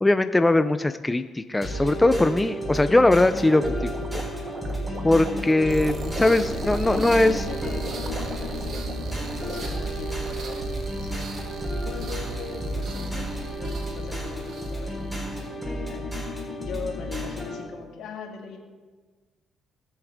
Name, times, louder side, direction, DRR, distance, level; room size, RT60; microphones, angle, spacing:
voice 1, 0.0-4.2 5.0-7.3, left 2 dB, 15° left, 10 dB, 0.4 m, -21 dB
sound 1, 1.6-17.6, equal, 5° right, 4.0 m, -32 dB
sound 2, 3.1-9.9, right 3 dB, 45° right, 1.3 m, -41 dB
voice 2, 5.3-11.3 11.8-16.1 16.6-18.6, left 6 dB, 75° left, 1 dB, 2.1 m, -40 dB
sound 3, 5.6-15.6, right 4 dB, 65° right, 1.5 m, -36 dB
20.0 x 7.2 x 3.6 m, 1.4 s
cardioid pair, 90°, 0 cm